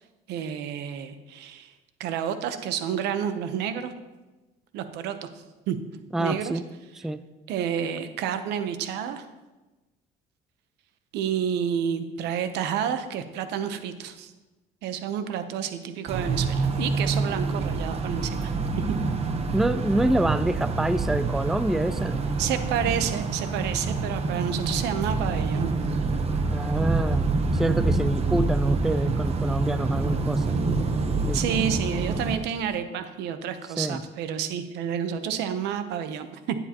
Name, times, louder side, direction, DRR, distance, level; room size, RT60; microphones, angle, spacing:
voice 1, 0.3-1.7 2.0-3.9 4.7-5.3 5.7-5.8 6.2-6.6 7.5-9.3 11.1-14.3 14.8-18.5 22.4-25.8 31.3-36.6, right 8 dB, 85° right, 10 dB, 0.9 m, -29 dB
voice 2, 6.1-6.7 6.9-7.2 19.5-22.2 26.5-30.6 31.2-31.4 33.8-34.0, right 1 dB, ahead, 13 dB, 0.4 m, -27 dB
sound 1, 16.1-32.4, right 3 dB, 35° right, 1.0 m, -26 dB
13.0 x 9.9 x 3.0 m, 1.1 s
cardioid pair, 110°, 17 cm